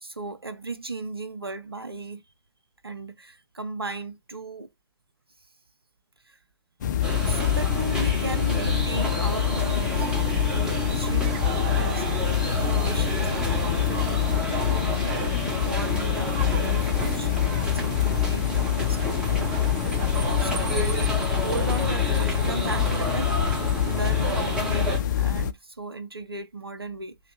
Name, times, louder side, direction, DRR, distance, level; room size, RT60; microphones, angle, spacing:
voice 1, 0.0-2.2 2.8-4.7 6.2-6.4 7.3-14.3 15.5-19.8 20.4-21.1 21.4-27.2, right 3 dB, 85° right, 0.6 m, -36 dB
sound 1, 6.8-25.5, left 9 dB, 50° left, 0.4 m, -25 dB
sound 2, 7.0-25.0, right 1 dB, 5° right, 1.3 m, -32 dB
sound 3, 10.8-21.1, right 7 dB, 30° right, 0.4 m, -40 dB
3.3 x 2.1 x 2.8 m
figure-of-eight pair, 110°, 12 cm